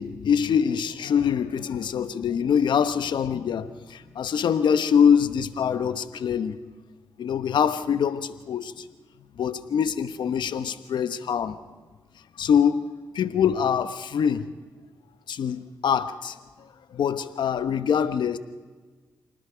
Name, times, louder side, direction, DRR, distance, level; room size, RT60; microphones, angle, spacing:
voice 1, 0.0-6.6 7.2-8.9 9.4-11.6 12.4-12.9 13.1-14.5 15.3-16.4 16.9-18.4, left 7 dB, 75° left, 1.1 m, -24 dB
27.0 x 19.5 x 5.1 m
supercardioid pair, 45°, 8 cm